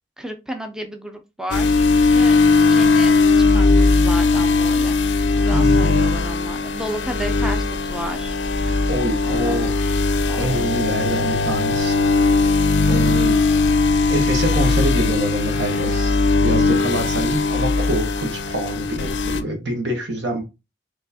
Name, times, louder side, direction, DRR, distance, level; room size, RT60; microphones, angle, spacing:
voice 1, 0.2-1.8 2.1-5.0 5.4-8.3 9.2-9.6 10.3-10.7 11.0-11.4 12.8-13.1 13.5-14.0, equal, 5° right, 0.4 m, -33 dB
sound 1, 1.5-19.4, left 3 dB, 80° left, 0.4 m, -18 dB
voice 2, 5.5-5.9 8.7-9.7 10.3-12.0 12.4-13.4 14.1-20.4, right 1 dB, 80° right, 1.3 m, -26 dB
4.4 x 3.1 x 2.7 m
head